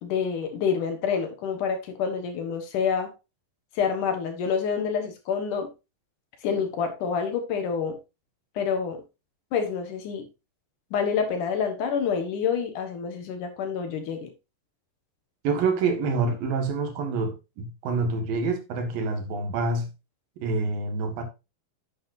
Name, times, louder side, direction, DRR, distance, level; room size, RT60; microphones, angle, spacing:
voice 1, 0.0-3.1 3.8-5.7 6.4-8.0 8.6-9.0 9.5-10.3 10.9-14.3, left 6 dB, 65° left, 2.8 m, -27 dB
voice 2, 15.4-19.9 20.4-21.2, right 4 dB, 75° right, 3.3 m, -27 dB
9.7 x 7.9 x 2.6 m
omnidirectional pair, 4.1 m